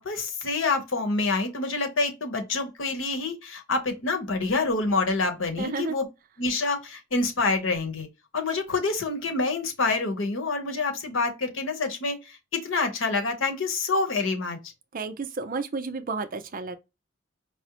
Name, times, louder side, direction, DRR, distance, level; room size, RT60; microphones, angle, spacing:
voice 1, 0.0-6.1 6.4-8.1 8.3-14.6, left 3 dB, 75° left, 0.9 m, -27 dB
voice 2, 5.6-6.0 14.9-16.8, right 4 dB, 45° right, 0.4 m, -31 dB
4.9 x 2.0 x 2.9 m
head